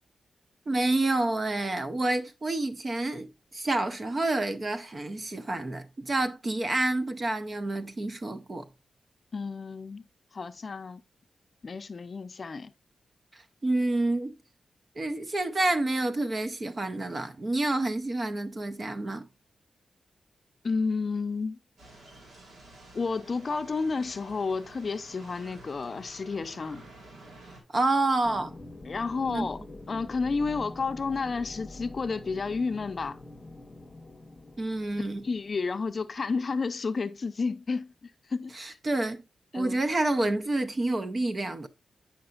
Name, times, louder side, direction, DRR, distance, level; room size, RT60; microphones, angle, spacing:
voice 1, 0.7-8.7 13.3-14.4 15.0-19.3 27.7-28.5 29.3-29.5 34.6-35.3 38.6-39.2 39.5-41.7, right 2 dB, 35° right, 0.6 m, -28 dB
voice 2, 9.3-10.0 10.3-11.0 11.6-12.7 20.6-21.6 22.9-26.8 28.9-29.6 29.9-33.2 35.2-38.8 39.5-39.8, left 4 dB, 45° left, 0.5 m, -31 dB
sound 1, 21.8-27.6, right 2 dB, 80° right, 2.2 m, -50 dB
sound 2, 28.2-36.7, left 2 dB, 25° left, 0.9 m, -45 dB
8.8 x 5.8 x 2.4 m
wide cardioid pair, 110°, 0 cm